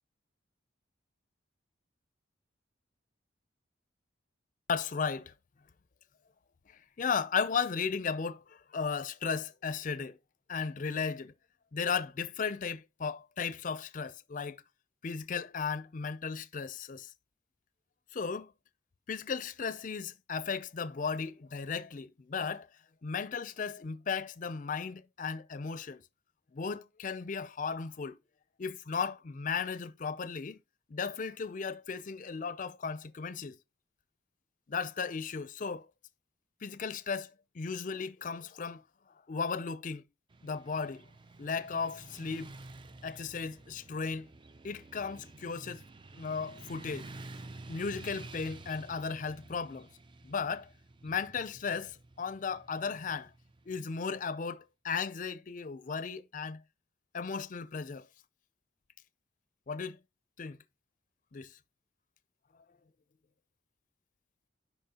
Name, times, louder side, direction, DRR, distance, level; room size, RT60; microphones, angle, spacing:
voice 1, 4.7-5.3 7.0-10.2 10.5-11.3 11.7-14.6 15.0-17.1 18.1-18.5 19.1-22.7 23.0-26.0 26.5-28.2 28.6-30.6 30.9-33.6 34.7-35.8 36.6-37.3 37.5-38.8 39.3-40.0 40.4-41.0 41.4-42.5 43.0-44.3 44.6-45.8 46.2-47.1 47.7-49.9 50.2-50.7 51.0-53.3 53.7-56.6 57.1-58.1 59.7-60.0 60.4-60.6 61.3-61.5, left 5 dB, 40° left, 0.4 m, -35 dB
Motorcycle / Traffic noise roadway noise, 40.3-54.4, right 2 dB, 25° right, 0.4 m, -51 dB
10.5 x 4.0 x 2.8 m
head